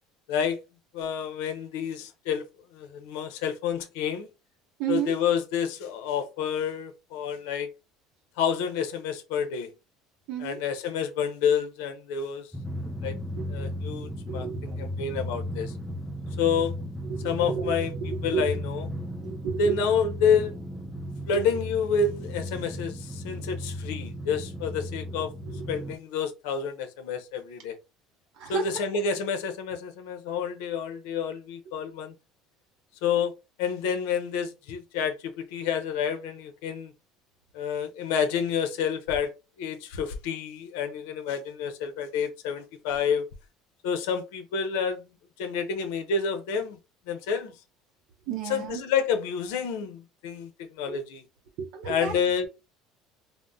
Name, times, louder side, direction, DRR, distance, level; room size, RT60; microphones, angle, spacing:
voice 1, 0.3-0.6 0.9-2.4 2.8-4.3 4.9-7.7 8.4-9.7 10.4-12.5 13.0-13.1 13.5-15.7 16.4-16.7 17.2-17.9 18.2-18.9 19.6-20.5 21.3-25.3 25.7-27.7 28.5-32.1 33.0-33.3 33.6-35.1 35.5-36.9 37.5-39.3 39.6-43.2 43.8-45.0 45.4-46.8 47.1-47.5 48.5-50.5 50.8-51.2 51.9-52.5, left 6 dB, 90° left, 0.6 m, -28 dB
voice 2, 4.8-5.1 10.3-10.6 13.4-13.7 14.3-14.8 17.0-18.6 19.2-19.8 21.3-21.4 25.4-25.6 28.3-29.0 48.3-48.8 50.9-51.0 51.6-52.3, right 7 dB, 65° right, 0.6 m, -32 dB
Drum, 12.5-26.0, equal, ahead, 0.4 m, -35 dB
3.6 x 2.0 x 2.6 m
cardioid pair, 155°, 0 cm